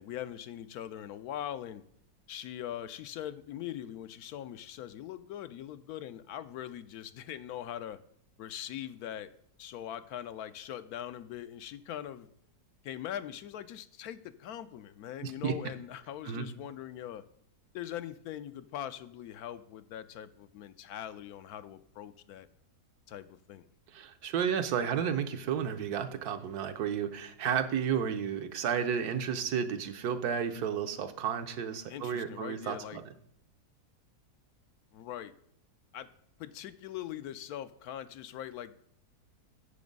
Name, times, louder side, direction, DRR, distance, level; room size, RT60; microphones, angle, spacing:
voice 1, 0.0-1.8 2.3-8.0 8.4-9.3 9.6-12.3 12.8-17.2 17.7-22.5 23.1-23.6 31.9-33.0 34.9-35.3 35.9-36.1 36.4-38.7, left 11 dB, 75° left, 12 dB, 1.0 m, -41 dB
voice 2, 15.2-15.5 16.2-16.4 23.9-33.0, right 8 dB, 75° right, 8 dB, 1.3 m, -32 dB
8.5 x 7.0 x 5.2 m, 0.69 s
omnidirectional pair, 1.7 m